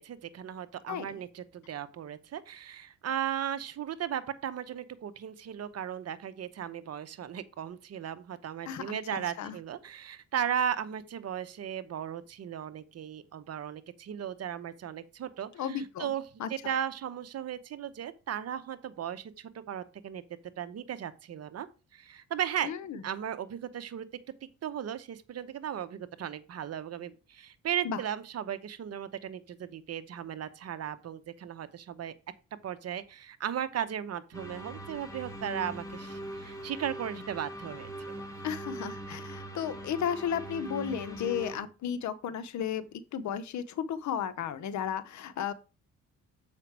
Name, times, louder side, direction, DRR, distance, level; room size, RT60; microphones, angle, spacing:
voice 1, 0.0-16.2 16.5-20.2 20.6-21.7 21.9-22.7 23.0-24.1 24.6-32.1 32.6-38.1, right 9 dB, 55° right, 0.9 m, -36 dB
voice 2, 0.9-1.2 8.6-9.6 15.5-16.1 16.4-16.5 22.6-23.0 27.8-28.0 38.4-45.5, left 8 dB, 70° left, 0.9 m, -34 dB
sound 1, 34.3-41.6, right 1 dB, 10° left, 1.9 m, -41 dB
7.4 x 5.2 x 4.6 m
cardioid pair, 90°, 30 cm